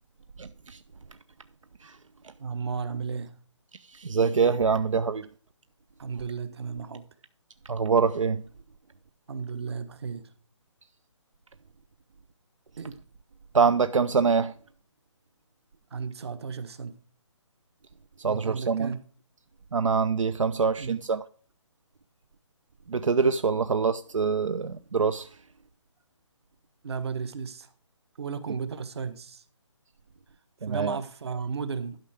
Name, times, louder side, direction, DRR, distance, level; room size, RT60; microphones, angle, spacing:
voice 1, 0.4-0.8 1.8-2.0 2.2-2.3 3.9-5.3 7.7-8.4 13.5-14.5 18.2-19.0 19.7-21.2 22.9-25.4 30.6-31.0, right 5 dB, 80° right, 0.7 m, -25 dB
voice 2, 2.4-3.3 6.0-7.1 9.3-10.3 12.8-13.0 15.9-16.9 18.3-19.0 20.8-21.0 26.8-27.7 28.2-29.4 30.6-32.0, right 5 dB, 55° right, 1.4 m, -34 dB
12.0 x 5.8 x 4.9 m
figure-of-eight pair, 155°, 16 cm